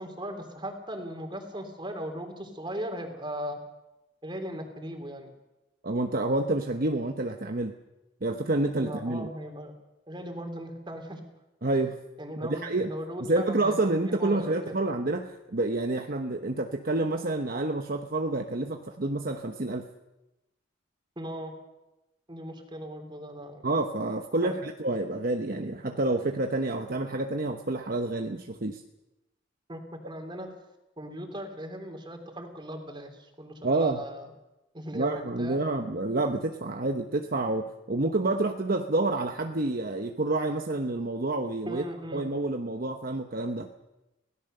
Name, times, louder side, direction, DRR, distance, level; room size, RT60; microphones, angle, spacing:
voice 1, 0.0-3.6 4.2-5.3 8.8-9.7 10.1-11.2 12.2-14.8 21.2-21.6 22.3-23.6 24.4-24.5 29.7-30.5 31.0-34.3 34.7-35.6 41.7-42.2, equal, 25° right, 4 dB, 3.4 m, -38 dB
voice 2, 5.8-7.7 8.2-9.3 11.6-12.0 12.4-12.9 13.2-19.9 23.6-28.8 33.6-34.0 34.9-41.9 42.1-43.7, right 2 dB, 50° right, 5 dB, 1.0 m, -28 dB
25.0 x 17.5 x 6.7 m, 0.98 s
head